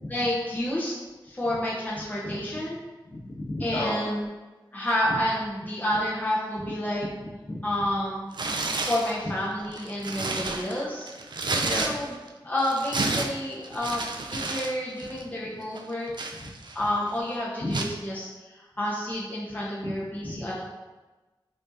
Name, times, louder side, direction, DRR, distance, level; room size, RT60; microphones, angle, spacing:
voice 1, 0.1-0.9 1.2-2.8 3.6-4.3 4.7-7.1 7.6-8.2 8.9-11.1 11.7-12.1 12.4-16.1 16.7-20.7, left 1 dB, 20° left, -7 dB, 0.9 m, -29 dB
voice 2, 3.1-4.1 5.1-5.2 7.2-7.6 11.6-11.8 17.6-17.7 20.2-20.4, left 1 dB, 55° left, -6 dB, 1.2 m, -32 dB
Tearing, 8.3-9.1 9.6-12.3 12.6-14.7 15.0-15.2 15.7-16.9 17.7-18.0, right 3 dB, 65° right, 0.4 m, -31 dB
5.2 x 2.7 x 2.5 m, 1.2 s
wide cardioid pair, 75°, 8 cm